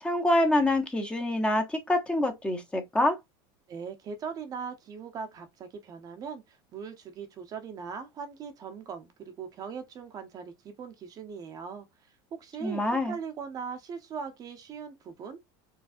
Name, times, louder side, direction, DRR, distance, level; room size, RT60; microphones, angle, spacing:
voice 1, 0.0-3.2 12.6-13.1, left 1 dB, 10° left, 0.8 m, -26 dB
voice 2, 3.7-11.9 12.3-15.5, right 6 dB, 30° right, 0.7 m, -40 dB
4.7 x 3.3 x 2.5 m
supercardioid pair, 150°, 12 cm